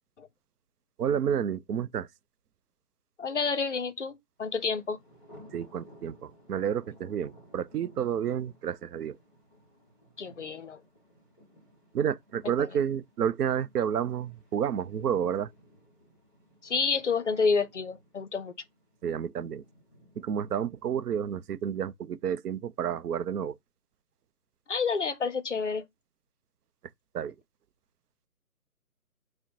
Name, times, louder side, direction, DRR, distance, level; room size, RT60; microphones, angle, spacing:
voice 1, 1.0-2.1 5.5-9.2 11.9-15.5 19.0-19.6 20.2-23.6 27.1-27.3, right 8 dB, 90° right, 0.5 m, -30 dB
voice 2, 3.2-5.0 10.2-10.8 12.6-12.7 16.6-18.5 24.7-25.8, left 5 dB, 55° left, 0.5 m, -29 dB
Thunder, 4.4-21.4, equal, 5° left, 0.9 m, -57 dB
3.9 x 2.1 x 4.3 m
hypercardioid pair, 170°, 46 cm